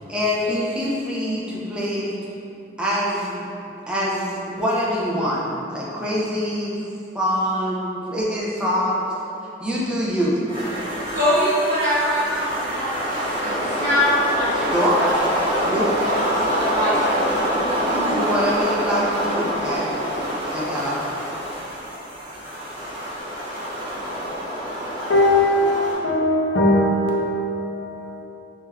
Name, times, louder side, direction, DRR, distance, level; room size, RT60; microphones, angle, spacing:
voice 1, 0.1-2.1 2.8-3.4 3.9-6.8 7.1-9.1 9.6-10.4 14.5-15.2 15.7-16.0 18.1-19.9 20.5-21.0, equal, 5° right, 0.3 m, -24 dB
sound 1, 10.5-25.9, equal, 25° right, 0.9 m, -26 dB
voice 2, 11.1-14.7 15.0-15.1 15.4-15.6 16.0-18.1, equal, 60° right, 1.0 m, -24 dB
voice 3, 25.1-28.2, left 1 dB, 65° left, 0.4 m, -20 dB
3.2 x 2.3 x 2.2 m
head